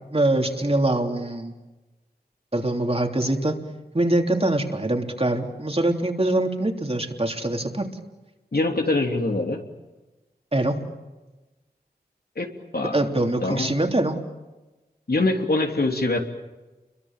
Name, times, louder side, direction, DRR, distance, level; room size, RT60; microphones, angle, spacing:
voice 1, 0.1-1.5 2.5-3.6 3.9-7.9 10.5-10.8 12.9-14.2, right 1 dB, 35° right, 3 dB, 3.3 m, -23 dB
voice 2, 8.5-9.6 12.3-12.5 12.7-13.0 13.4-13.8 15.1-16.2, left 2 dB, 70° left, 3 dB, 3.3 m, -23 dB
29.5 x 23.0 x 7.5 m, 1.1 s
wide cardioid pair, 45°, 17 cm